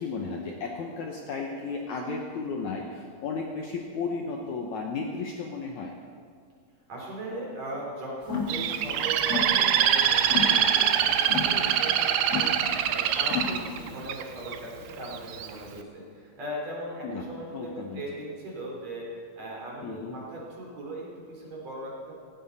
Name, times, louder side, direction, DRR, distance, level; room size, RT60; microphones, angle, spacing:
voice 1, 0.0-5.9 17.0-17.2 17.5-18.0 19.8-20.2, left 4 dB, 65° left, 0 dB, 2.0 m, -34 dB
voice 2, 6.9-19.1 19.4-22.1, right 1 dB, 45° right, -3 dB, 4.4 m, -38 dB
sound 1, 8.2-14.0, left 5 dB, 25° left, 1.6 m, -33 dB
Bird, 8.5-14.6 15.1-15.5, right 9 dB, 75° right, 2.2 m, -24 dB
17.0 x 17.0 x 4.2 m, 2.1 s
omnidirectional pair, 4.4 m